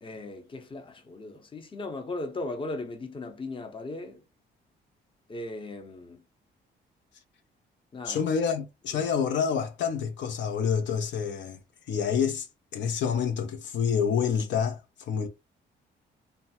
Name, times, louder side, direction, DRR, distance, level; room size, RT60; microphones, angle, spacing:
voice 1, 0.0-4.2 5.3-6.2 7.9-8.3 8.9-9.0, left 2 dB, 25° left, 0.7 m, -37 dB
voice 2, 8.0-11.6 11.9-12.5 12.7-15.3, left 7 dB, 65° left, 0.6 m, -28 dB
2.8 x 2.2 x 2.8 m
cardioid pair, 90°, 20 cm